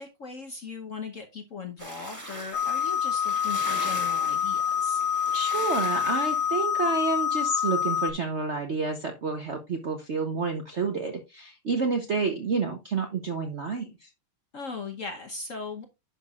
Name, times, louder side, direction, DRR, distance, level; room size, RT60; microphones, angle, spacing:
voice 1, 0.0-5.0 14.5-15.8, left 4 dB, 50° left, 5 dB, 1.0 m, -38 dB
sound 1, 1.8-6.5, equal, 10° right, 1.7 m, -41 dB
sound 2, 2.5-8.1, left 8 dB, 85° left, 1.6 m, -27 dB
voice 2, 5.3-14.1, right 4 dB, 55° right, 4 dB, 0.8 m, -29 dB
10.5 x 5.9 x 2.4 m, 0.23 s
omnidirectional pair, 2.3 m